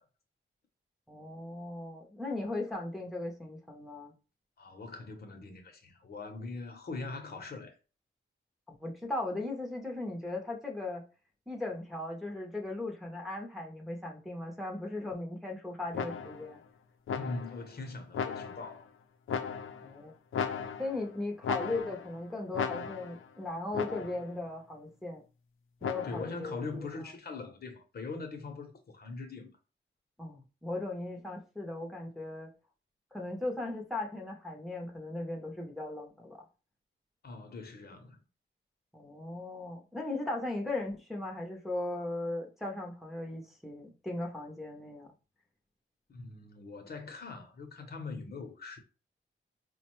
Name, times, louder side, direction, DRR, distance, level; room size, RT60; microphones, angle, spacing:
voice 1, 1.1-4.1 8.8-11.0 11.5-16.6 19.8-20.1 20.8-25.2 25.8-26.9 30.2-32.5 33.1-36.5 38.9-45.1, left 2 dB, ahead, 0.7 m, -37 dB
voice 2, 4.6-7.8 17.1-18.9 26.0-29.6 37.2-38.2 46.1-48.8, left 3 dB, 50° left, 0.8 m, -42 dB
sound 1, 15.9-16.5 17.1-17.7 18.1-18.8 19.3-19.9 20.3-21.1 21.4-22.2 22.5-23.3 23.7-24.3 25.8-26.4, left 6 dB, 80° left, 0.5 m, -36 dB
4.8 x 2.2 x 3.0 m
wide cardioid pair, 150°, 21 cm